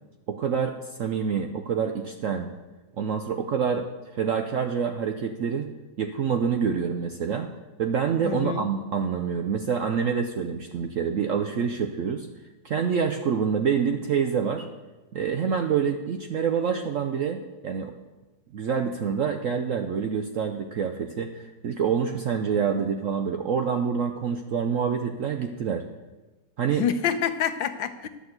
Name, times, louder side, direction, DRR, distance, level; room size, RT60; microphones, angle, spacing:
voice 1, 0.3-2.5 3.0-3.9 4.1-5.7 6.0-7.5 7.8-12.3 12.6-14.7 15.1-17.9 18.5-25.8 26.6-26.8, right 6 dB, 65° right, 6 dB, 0.8 m, -27 dB
voice 2, 8.2-8.7 26.8-28.1, left 8 dB, 80° left, 10 dB, 1.5 m, -27 dB
11.5 x 6.6 x 7.9 m, 1.2 s
omnidirectional pair, 2.0 m